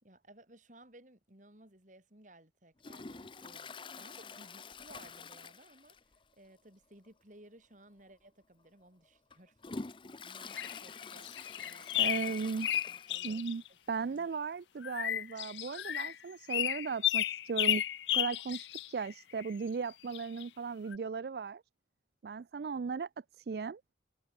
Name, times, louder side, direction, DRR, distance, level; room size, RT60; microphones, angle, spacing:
voice 1, 0.0-12.2 12.7-13.4 13.7-13.8 14.0-14.3, right 1 dB, 45° right, 4.0 m, -59 dB
Toilet flush, 2.8-6.2 6.5-6.6 7.1-7.2 8.0-8.1 8.7-13.6 13.9-14.0 14.2-14.3 15.3-15.4, left 4 dB, 30° left, 0.6 m, -47 dB
sound 1, 10.5-13.7 14.8-16.2 16.5-19.5 20.1-20.4 20.9-21.0, left 12 dB, 80° left, 0.5 m, -33 dB
voice 2, 12.0-12.7 13.2-13.6 13.9-17.8 18.1-21.6 22.2-23.1 23.4-23.8, right 5 dB, 60° right, 0.4 m, -37 dB
head